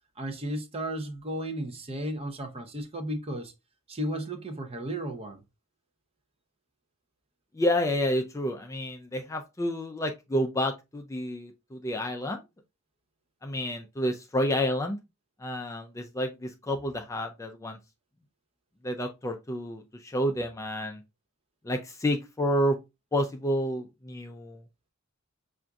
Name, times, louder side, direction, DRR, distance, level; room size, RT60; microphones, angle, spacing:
voice 1, 0.2-3.5 3.9-5.4, right 1 dB, 30° right, 0.6 m, -34 dB
voice 2, 7.5-12.4 13.4-15.0 15.4-17.8 18.8-21.0 21.6-22.8 23.1-24.6, equal, 15° left, 0.3 m, -29 dB
5.6 x 2.5 x 2.3 m
head